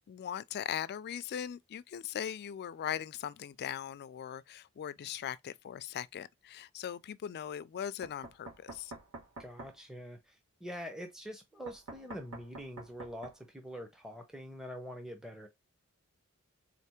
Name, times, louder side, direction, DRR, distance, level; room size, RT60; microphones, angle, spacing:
voice 1, 0.1-8.9, left 9 dB, 50° left, 0.3 m, -39 dB
Knock, 8.0-9.7 11.7-13.4, right 2 dB, 70° right, 1.8 m, -47 dB
voice 2, 9.4-15.5, equal, 5° right, 0.6 m, -45 dB
4.0 x 3.3 x 2.9 m
head